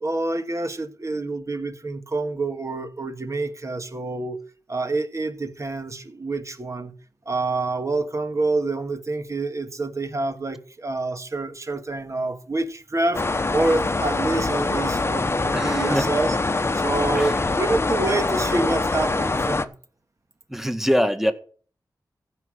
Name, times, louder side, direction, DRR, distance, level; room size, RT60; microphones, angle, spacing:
voice 1, 0.0-4.4 4.7-6.9 7.3-13.2 13.5-16.4 16.7-19.7, right 2 dB, 40° right, 1.8 m, -27 dB
sound 1, 13.1-19.6, left 3 dB, 35° left, 1.0 m, -24 dB
voice 2, 15.5-16.0 17.1-17.4 20.5-21.3, equal, 5° right, 1.7 m, -23 dB
15.0 x 5.8 x 6.4 m
cardioid pair, 60°, 8 cm